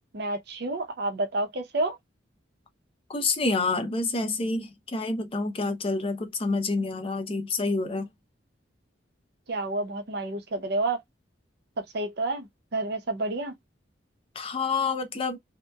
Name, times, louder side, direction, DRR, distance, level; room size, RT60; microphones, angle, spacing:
voice 1, 0.1-2.0 9.5-11.0 11.8-13.6, right 2 dB, 55° right, 0.6 m, -29 dB
voice 2, 3.1-8.1 14.4-15.4, left 3 dB, 30° left, 0.5 m, -28 dB
2.8 x 2.1 x 2.2 m
head